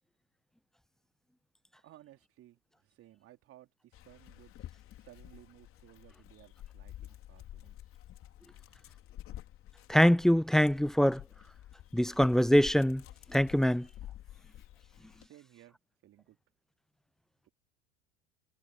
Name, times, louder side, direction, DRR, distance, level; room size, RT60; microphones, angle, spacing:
voice 1, 1.8-4.5 5.0-7.8 15.2-16.4 17.4-17.5, right 14 dB, 45° right, 4.0 m, -58 dB
Dog, 3.9-15.3, left 13 dB, 40° left, 3.8 m, -50 dB
voice 2, 9.9-11.2 11.9-13.0 13.3-13.9, equal, ahead, 0.4 m, -24 dB
figure-of-eight pair, 75°, 32 cm